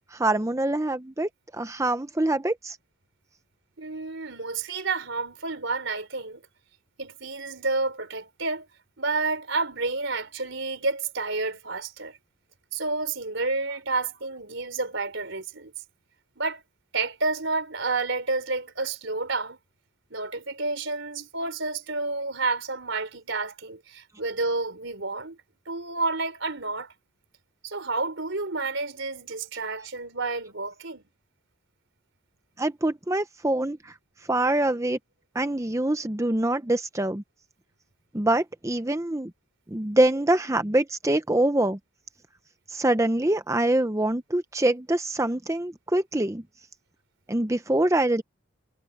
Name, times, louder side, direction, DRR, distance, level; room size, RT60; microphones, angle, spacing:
voice 1, 0.1-2.8 32.6-33.9 34.3-35.0 35.3-37.2 38.1-39.3 39.7-41.8 42.7-46.4 47.3-48.2, right 1 dB, 15° right, 0.6 m, -24 dB
voice 2, 3.8-6.4 7.0-8.7 9.0-12.2 12.7-15.7 16.4-16.6 16.9-19.6 20.1-25.4 25.7-26.9 27.6-31.0, right 3 dB, 60° right, 4.0 m, -30 dB
head